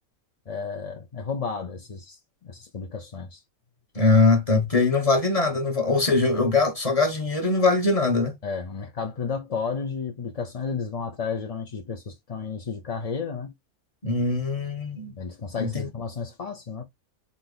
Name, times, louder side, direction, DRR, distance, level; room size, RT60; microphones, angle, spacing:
voice 1, 0.5-3.4 8.4-13.5 15.2-16.8, left 5 dB, 45° left, 0.5 m, -32 dB
voice 2, 3.9-8.3 14.0-15.1 15.6-15.9, left 3 dB, 30° left, 1.1 m, -22 dB
4.0 x 2.8 x 3.9 m
omnidirectional pair, 1.5 m